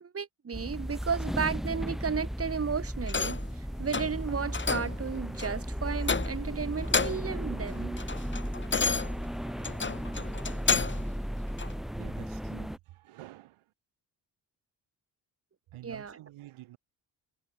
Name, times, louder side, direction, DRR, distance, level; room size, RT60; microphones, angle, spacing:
voice 1, 0.0-8.0 15.8-16.2, right 6 dB, 30° right, 1.2 m, -34 dB
sound 1, 0.5-12.8, equal, ahead, 1.0 m, -35 dB
sound 2, 3.1-3.5 3.9-4.2 4.5-5.0 5.4-5.6 6.0-6.5 6.8-7.4 7.7-11.1 11.6-11.7, left 4 dB, 25° left, 1.2 m, -31 dB
voice 2, 12.0-13.7 15.7-16.8, right 16 dB, 85° right, 4.9 m, -49 dB
supercardioid pair, 50°, 48 cm